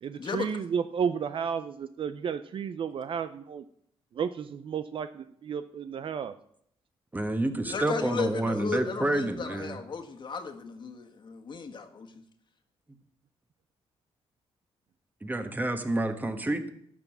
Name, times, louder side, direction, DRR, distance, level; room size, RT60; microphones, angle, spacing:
voice 1, 0.0-3.6 4.2-6.3, right 7 dB, 55° right, 11 dB, 0.5 m, -32 dB
voice 2, 7.1-9.8 15.2-16.7, right 2 dB, 15° right, 7 dB, 1.4 m, -29 dB
voice 3, 7.7-12.1, left 5 dB, 50° left, 4 dB, 1.6 m, -35 dB
12.5 x 6.1 x 7.3 m, 0.68 s
cardioid pair, 100°, 10 cm